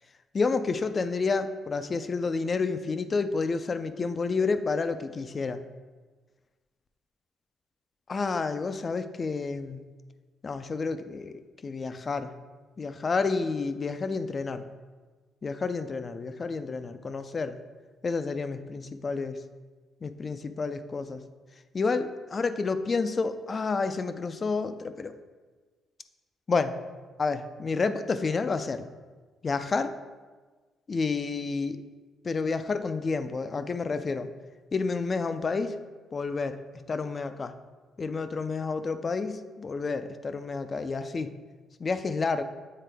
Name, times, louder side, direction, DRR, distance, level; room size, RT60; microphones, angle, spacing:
voice 1, 0.3-5.6 8.1-9.8 10.4-12.3 12.8-14.7 15.4-17.6 18.0-19.4 20.0-21.2 21.7-25.1 26.5-26.8 27.2-28.9 29.4-29.9 30.9-31.8 32.2-34.3 34.7-35.8 36.1-36.6 36.9-37.5 38.0-41.3 41.8-42.4, left 4 dB, 35° left, 10 dB, 0.4 m, -30 dB
7.6 x 3.7 x 3.4 m, 1.4 s
cardioid pair, 90°, 0 cm